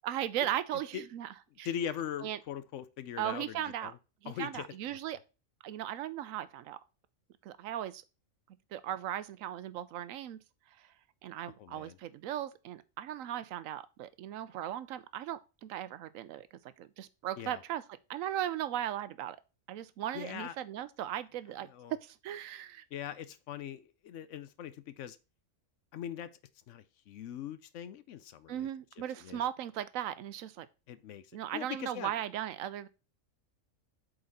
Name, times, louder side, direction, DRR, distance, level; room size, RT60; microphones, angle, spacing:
voice 1, 0.0-1.3 1.6-1.7 2.2-2.4 3.2-3.9 4.2-5.2 5.6-6.8 7.4-8.0 8.7-10.4 10.8-10.9 11.2-16.5 16.8-17.8 18.1-19.4 19.7-22.8 28.5-30.7 31.3-32.9, right 11 dB, 85° right, 1.0 m, -37 dB
voice 2, 1.6-4.0 4.3-4.7 5.1-5.2 11.6-12.0 17.4-17.6 20.1-20.6 21.7-21.9 22.9-25.2 25.9-26.3 26.7-28.7 29.2-29.4 30.9-32.1, left 9 dB, 70° left, 0.9 m, -41 dB
7.8 x 4.1 x 4.0 m
omnidirectional pair, 1.4 m